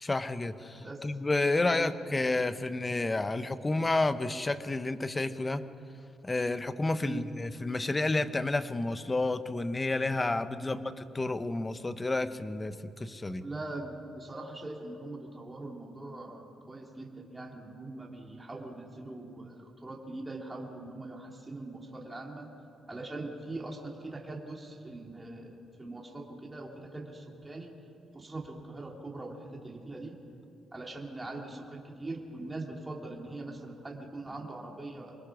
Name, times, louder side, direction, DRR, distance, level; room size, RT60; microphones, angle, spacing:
voice 1, 0.0-5.6 6.2-10.8 11.1-13.4, left 2 dB, 20° left, 11 dB, 1.0 m, -30 dB
voice 2, 13.4-22.5 22.9-27.8 28.1-30.2 30.7-35.2, right 2 dB, 20° right, 0 dB, 2.9 m, -42 dB
25.0 x 21.0 x 6.2 m, 2.5 s
cardioid pair, 90°, 0 cm